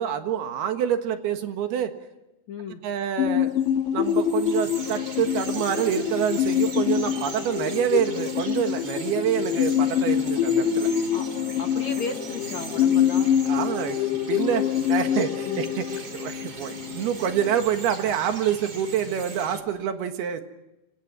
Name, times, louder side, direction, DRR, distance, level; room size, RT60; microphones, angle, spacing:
voice 1, 0.0-1.9 2.8-3.5 3.9-10.9 13.5-14.0 14.3-15.8 16.1-20.4, right 9 dB, 70° right, 7 dB, 3.4 m, -27 dB
voice 2, 2.5-2.8 11.1-11.3 11.6-13.4 15.5-15.6, left 4 dB, 55° left, 4 dB, 2.2 m, -35 dB
sound 1, 3.2-17.6, left 9 dB, 90° left, 3.8 m, -25 dB
Bird vocalization bird call bird song, 3.5-19.6, right 3 dB, 30° right, 2.3 m, -40 dB
27.5 x 26.0 x 6.1 m, 0.94 s
omnidirectional pair, 4.9 m